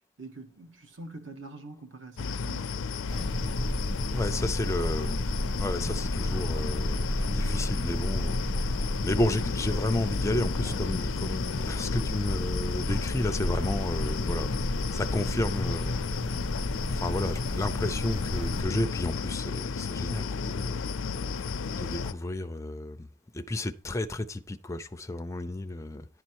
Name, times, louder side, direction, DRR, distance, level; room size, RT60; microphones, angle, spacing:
voice 1, 0.2-2.9, right 3 dB, 60° right, 1.3 m, -45 dB
sound 1, 2.2-22.1, left 4 dB, 75° left, 0.5 m, -32 dB
sound 2, 3.1-18.6, equal, 20° right, 1.2 m, -33 dB
voice 2, 4.1-5.2 5.6-16.5 16.9-20.8 21.7-23.1 23.3-26.1, left 1 dB, 15° left, 0.4 m, -32 dB
11.0 x 4.3 x 4.6 m
head